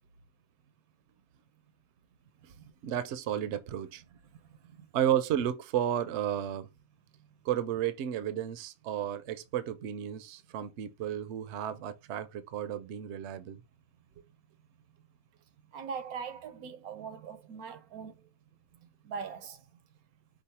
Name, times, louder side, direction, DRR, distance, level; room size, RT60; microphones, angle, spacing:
voice 1, 2.2-2.7 4.1-4.9 7.1-7.5 14.0-14.1 15.6-18.3 18.7-19.8, right 6 dB, 85° right, 1.2 m, -43 dB
voice 2, 2.8-4.0 4.9-6.7 7.4-13.6, right 10 dB, 65° right, 0.8 m, -32 dB
5.4 x 2.0 x 4.1 m
omnidirectional pair, 1.5 m